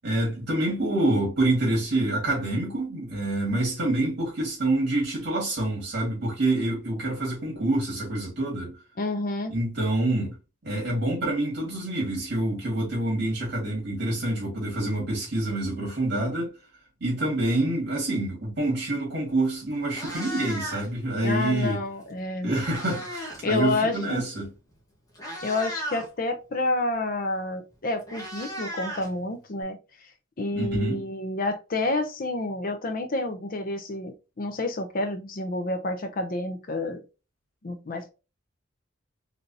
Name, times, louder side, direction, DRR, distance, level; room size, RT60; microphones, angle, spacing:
voice 1, 0.0-8.8 9.5-10.4 10.6-16.5 17.0-21.8 22.4-24.5 30.5-31.1, right 1 dB, 55° right, 1.9 m, -27 dB
voice 2, 9.0-9.5 21.2-22.5 23.4-24.2 25.4-29.8 30.4-37.0 37.6-38.1, left 2 dB, 45° left, 0.6 m, -29 dB
Meow, 19.3-19.4 19.8-21.1 22.1-23.5 23.7-24.0 24.7-24.8 25.1-26.1 27.4-27.5 27.7-29.6, equal, 20° left, 1.3 m, -36 dB
3.9 x 3.4 x 2.7 m
head